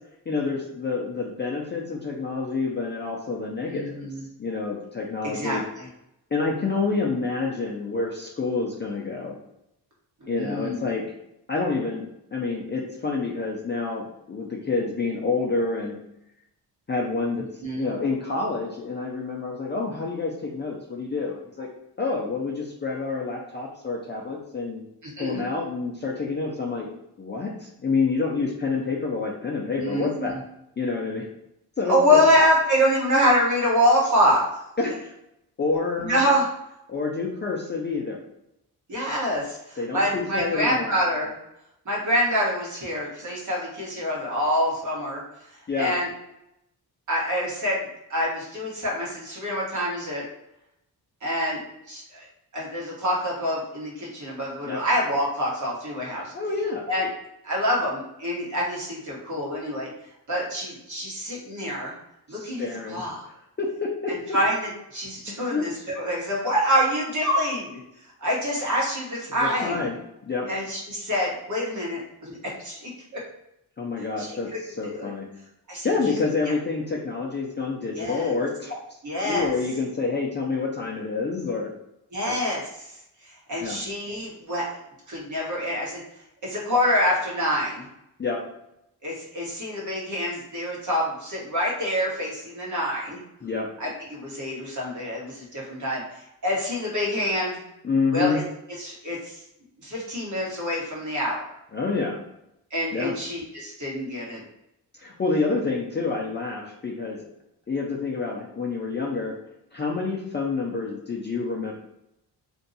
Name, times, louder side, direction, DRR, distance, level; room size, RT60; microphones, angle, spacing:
voice 1, 0.3-4.1 4.4-5.6 6.3-9.4 10.3-11.0 11.5-16.0 16.9-17.4 17.7-21.7 22.0-24.8 25.2-26.9 27.2-30.4 30.8-31.2 31.8-32.2 34.8-35.1 35.6-36.2 36.9-38.2 39.8-41.0 45.7-45.9 54.6-54.8 56.3-56.8 62.3-63.0 63.6-64.4 65.3-65.7 69.3-70.0 70.2-70.5 73.8-75.3 75.8-78.8 79.2-81.7 82.2-82.4 83.6-83.8 88.2-88.4 93.4-93.7 97.8-98.4 101.7-102.2 102.9-103.1 105.0-107.2 107.7-109.3 109.7-111.7, left 4 dB, 25° left, -2 dB, 0.4 m, -28 dB
voice 2, 3.7-4.2 5.2-5.9 10.2-10.9 17.6-17.9 25.0-25.5 29.7-30.4 31.9-34.4 36.0-36.4 38.9-41.3 41.8-45.2 45.8-46.1 47.1-50.2 51.2-52.2 52.5-56.3 56.9-57.1 57.4-59.9 60.3-61.9 62.3-63.3 64.1-67.8 68.2-69.9 70.5-72.4 72.6-72.9 74.2-74.4 74.9-75.1 75.7-76.5 78.0-78.3 79.0-79.5 82.1-82.9 83.2-84.7 85.1-86.0 86.4-87.9 89.0-93.2 93.8-97.6 98.1-98.4 98.8-99.4 99.8-101.5 102.7-104.4, equal, 45° right, -4 dB, 1.2 m, -26 dB
2.6 x 2.3 x 3.9 m, 0.83 s
wide cardioid pair, 145°, 41 cm